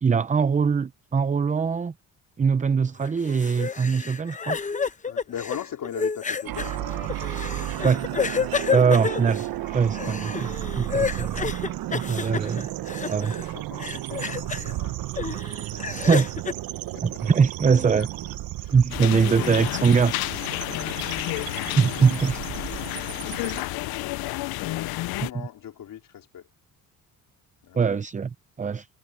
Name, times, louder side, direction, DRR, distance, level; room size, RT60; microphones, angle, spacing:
voice 1, 0.0-1.9 2.4-4.6 7.8-8.1 8.7-9.4 9.7-10.5 10.7-11.5 11.9-12.7 13.1-13.3 16.1-16.3 17.0-18.1 18.7-20.1 21.8-22.4 27.7-28.9, right 6 dB, 20° right, 0.6 m, -22 dB
sound 1, 3.0-13.5 13.8-14.7 15.2-16.5, left 5 dB, 20° left, 0.8 m, -30 dB
voice 2, 5.0-6.9 7.7-7.8 8.7-8.9 10.0-10.2 13.1-15.0 15.7-16.1 16.9-17.3 17.9-18.1 18.6-19.7 20.7-21.2 22.9-26.5 27.6-27.8, left 10 dB, 65° left, 3.7 m, -40 dB
sound 2, 6.4-23.6, right 15 dB, 80° right, 0.9 m, -33 dB
sound 3, 18.9-25.3, left 19 dB, 90° left, 0.5 m, -31 dB
cardioid pair, 105°, 35 cm